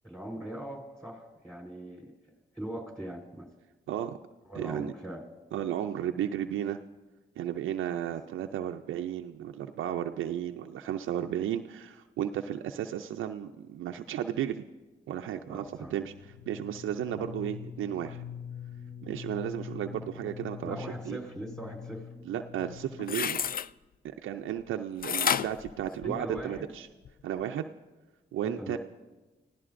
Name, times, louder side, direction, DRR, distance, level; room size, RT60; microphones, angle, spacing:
voice 1, 0.0-2.1 2.5-3.5 4.5-5.2 15.4-15.9 20.6-22.1 26.0-26.7 28.4-28.8, right 1 dB, 5° left, 3 dB, 4.1 m, -40 dB
voice 2, 3.9-4.2 4.5-4.9 5.5-6.8 7.4-14.6 15.1-16.1 16.5-18.2 19.0-21.2 22.2-23.4 24.0-26.9 27.2-27.7 28.3-28.8, right 10 dB, 85° right, 5 dB, 0.5 m, -34 dB
sound 1, 15.6-23.3, left 8 dB, 65° left, 5.6 m, -44 dB
sound 2, 22.7-23.7 25.0-26.6 27.1-27.2, left 8 dB, 45° left, 0.4 m, -30 dB
29.0 x 16.0 x 2.5 m, 1.2 s
supercardioid pair, 45°, 20 cm